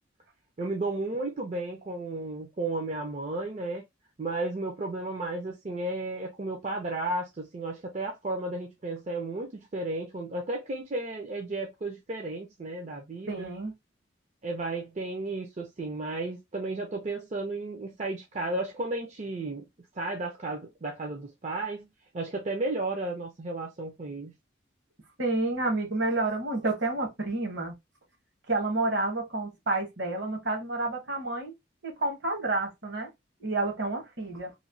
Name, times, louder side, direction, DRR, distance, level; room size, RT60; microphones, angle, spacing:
voice 1, 0.6-3.8 4.2-13.5 14.4-19.6 20.0-21.9 22.1-24.3, right 2 dB, 35° right, 0.5 m, -33 dB
voice 2, 13.3-13.7 25.2-27.7 28.5-31.5 31.8-33.1 33.4-34.5, right 2 dB, 65° right, 1.1 m, -29 dB
3.1 x 2.1 x 2.5 m
head